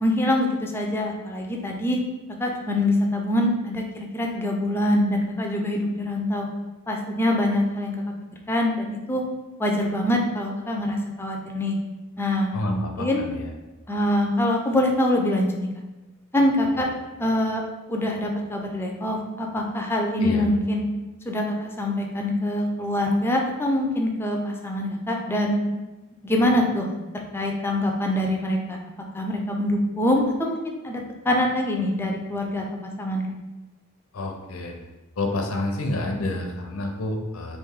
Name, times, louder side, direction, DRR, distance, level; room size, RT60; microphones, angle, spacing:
voice 1, 0.0-2.0 2.4-6.5 6.9-8.0 8.5-9.2 9.6-11.8 12.2-13.2 13.9-15.7 16.3-16.9 17.2-17.6 17.9-20.8 21.3-25.6 26.2-26.9 27.1-28.8 29.1-32.6 33.0-33.2, left 1 dB, 10° left, 0 dB, 0.4 m, -24 dB
voice 2, 12.5-13.5 20.2-20.5 34.1-34.7 35.2-37.6, left 2 dB, 85° left, 3 dB, 0.6 m, -29 dB
3.2 x 2.5 x 3.6 m, 1.1 s
head